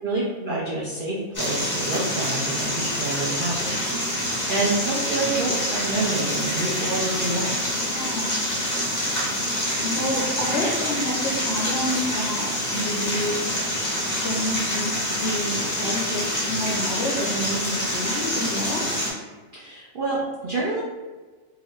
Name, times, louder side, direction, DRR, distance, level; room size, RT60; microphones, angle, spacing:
voice 1, 0.0-7.7 19.5-20.8, right 2 dB, 70° right, -5 dB, 0.5 m, -28 dB
sound 1, 1.3-19.1, equal, 25° left, 0.4 m, -26 dB
voice 2, 7.8-8.4 9.8-13.6 14.2-18.9, left 1 dB, 65° left, -2 dB, 0.7 m, -29 dB
2.8 x 2.4 x 3.1 m, 1.3 s
omnidirectional pair, 1.5 m